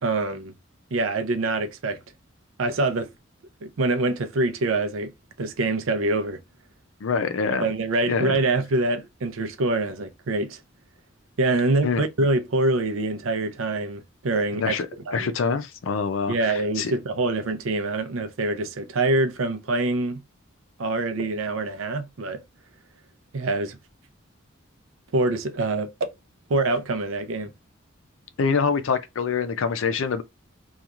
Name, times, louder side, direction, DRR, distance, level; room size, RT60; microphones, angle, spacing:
voice 1, 0.0-0.5 0.9-2.0 2.6-3.1 3.6-5.1 5.4-6.4 7.6-10.6 11.4-14.7 15.1-15.3 16.3-20.2 20.8-22.4 23.3-23.8 25.1-26.1 26.5-27.5, right 2 dB, 75° right, 0.5 m, -25 dB
voice 2, 7.0-7.7 8.1-8.3 11.8-12.0 14.5-14.9 15.1-17.0 28.4-30.2, left 5 dB, 70° left, 0.4 m, -25 dB
2.9 x 2.3 x 2.4 m
head